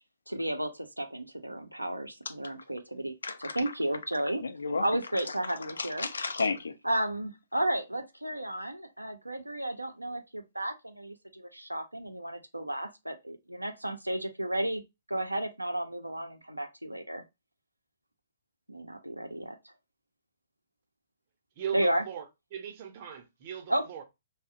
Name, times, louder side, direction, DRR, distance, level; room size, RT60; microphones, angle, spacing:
voice 1, 0.3-3.1 3.4-4.4 4.8-6.1 6.8-14.8 15.1-17.2 18.7-19.7 21.7-22.0 23.7-23.8, right 1 dB, 90° right, 0.5 m, -33 dB
voice 2, 3.2-3.6 4.4-4.8 5.1-6.7, left 4 dB, 70° left, 0.4 m, -33 dB
voice 3, 21.6-22.3 22.5-24.0, right 8 dB, 40° right, 0.6 m, -38 dB
2.7 x 2.0 x 2.5 m
figure-of-eight pair, 120°, 0 cm